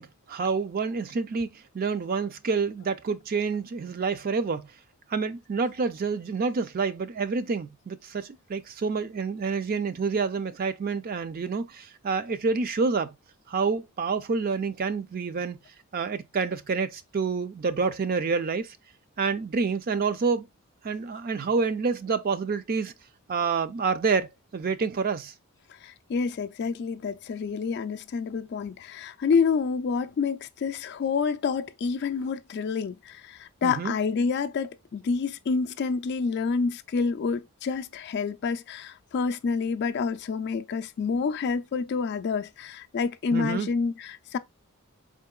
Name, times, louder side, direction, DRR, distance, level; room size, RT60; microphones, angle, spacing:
voice 1, 0.0-4.7 5.1-13.1 13.5-15.6 15.9-18.8 19.2-20.5 20.8-22.9 23.3-25.3 33.6-33.9 43.3-43.7, right 4 dB, 40° right, 0.4 m, -28 dB
voice 2, 25.8-44.4, left 5 dB, 50° left, 0.3 m, -28 dB
4.3 x 3.7 x 2.3 m
head